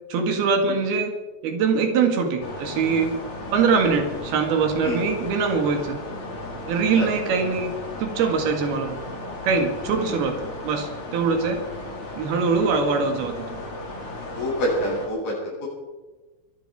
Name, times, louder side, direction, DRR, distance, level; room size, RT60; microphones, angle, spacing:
voice 1, 0.1-1.1 1.4-3.2 3.5-6.0 6.6-7.7 8.0-9.0 9.4-11.6 12.2-13.5, right 5 dB, 80° right, 5 dB, 3.8 m, -23 dB
sound 1, 2.4-15.1, left 2 dB, 35° left, 3.5 m, -35 dB
voice 2, 14.4-15.7, equal, 70° left, -5 dB, 9.5 m, -27 dB
23.5 x 12.0 x 4.7 m, 1.2 s
omnidirectional pair, 4.4 m